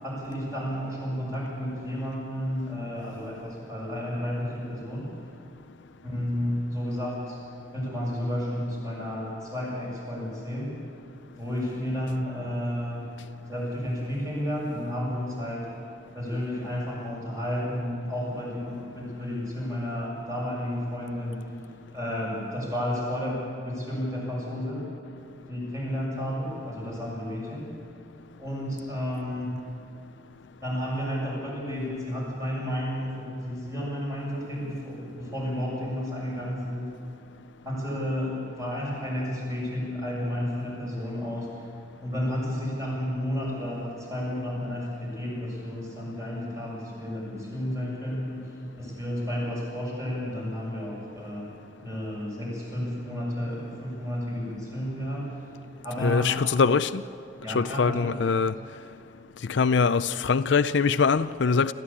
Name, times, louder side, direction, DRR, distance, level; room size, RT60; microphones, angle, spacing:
voice 1, 0.0-5.1 6.0-7.4 7.7-10.7 11.4-13.0 13.5-15.7 16.1-21.4 21.9-24.8 25.5-27.6 28.4-29.6 30.6-36.8 37.6-41.5 42.0-48.5 48.8-51.5 51.8-55.3 55.8-56.3 57.4-58.6, equal, 15° right, 7.0 m, -32 dB
voice 2, 56.0-57.0 57.5-58.6 59.5-61.7, left 5 dB, 65° left, 0.5 m, -23 dB
27.0 x 14.0 x 8.6 m
head